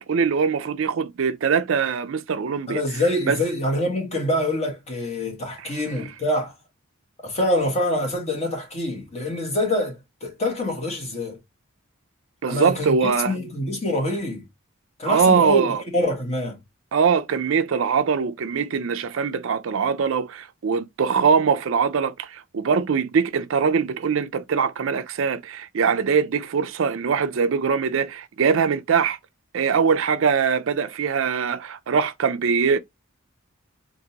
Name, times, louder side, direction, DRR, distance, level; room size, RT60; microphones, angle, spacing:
voice 1, 0.0-2.8 3.3-3.4 12.4-13.3 15.1-15.8 16.9-29.2 29.5-32.8, right 6 dB, 65° right, 0.4 m, -22 dB
voice 2, 2.7-6.6 7.2-11.4 12.5-14.4 15.0-16.6, left 1 dB, 30° left, 1.5 m, -25 dB
3.9 x 2.6 x 2.7 m
head